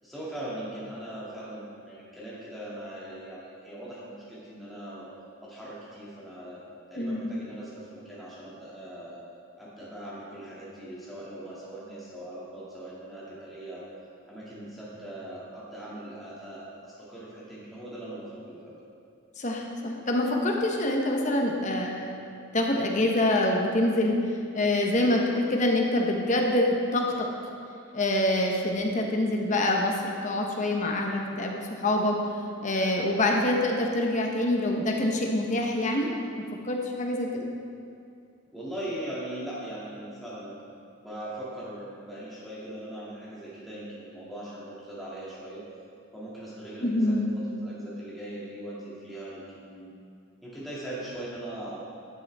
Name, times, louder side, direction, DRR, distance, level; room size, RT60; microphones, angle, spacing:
voice 1, 0.0-5.1 5.4-6.6 6.9-9.2 9.6-13.9 14.3-18.8 38.5-40.6 41.0-45.6 46.1-49.9 50.4-51.8, right 1 dB, ahead, -9 dB, 2.1 m, -40 dB
voice 2, 7.0-7.4 19.4-22.2 22.5-24.2 24.5-27.3 27.9-32.2 32.6-36.1 36.6-37.5 46.8-47.4, left 1 dB, 35° left, 1 dB, 0.8 m, -26 dB
11.5 x 6.8 x 3.4 m, 2.4 s
head